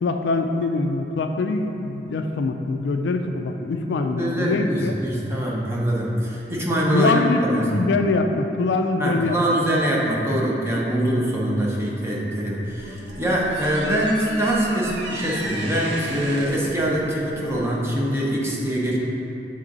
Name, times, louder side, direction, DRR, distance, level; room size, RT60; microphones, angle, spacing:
voice 1, 0.0-5.0 6.9-9.4, left 3 dB, 70° left, 6 dB, 0.3 m, -23 dB
voice 2, 4.2-7.9 9.0-19.0, right 1 dB, 15° right, -5 dB, 0.8 m, -23 dB
sound 1, 12.6-17.8, right 2 dB, 70° right, 0.7 m, -36 dB
7.4 x 3.7 x 3.9 m, 3.0 s
head